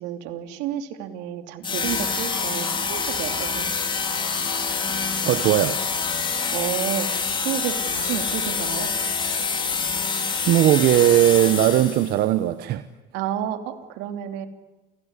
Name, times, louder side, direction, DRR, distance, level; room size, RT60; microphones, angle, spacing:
voice 1, 0.0-3.7 6.5-8.9 13.1-14.5, right 10 dB, 85° right, 7 dB, 2.9 m, -31 dB
sound 1, 1.6-12.2, left 5 dB, 30° left, 4.4 m, -26 dB
voice 2, 5.2-5.8 10.3-12.8, right 13 dB, 65° right, 11 dB, 1.1 m, -19 dB
29.0 x 18.5 x 9.8 m, 1.2 s
cardioid pair, 115°, 18 cm